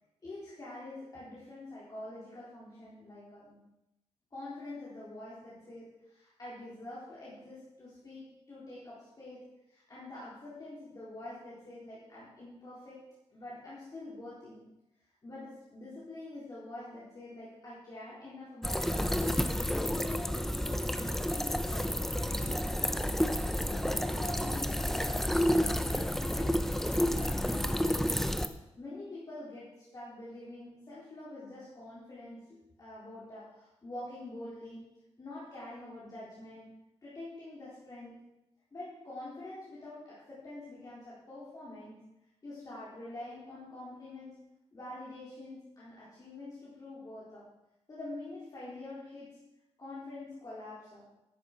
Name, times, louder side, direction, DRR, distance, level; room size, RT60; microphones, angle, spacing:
voice 1, 0.2-3.7 4.3-14.7 15.2-19.5 19.8-23.1 23.7-25.6 25.9-28.2 28.8-34.9 35.2-36.7 37.0-38.1 38.7-42.1 42.4-44.4 44.7-47.5 47.9-49.4 49.8-51.1, left 2 dB, 35° left, -8 dB, 4.0 m, -46 dB
sound 1, 18.6-28.5, equal, 5° left, 0.7 m, -30 dB
11.0 x 8.4 x 6.1 m, 0.92 s
wide cardioid pair, 110°, 12 cm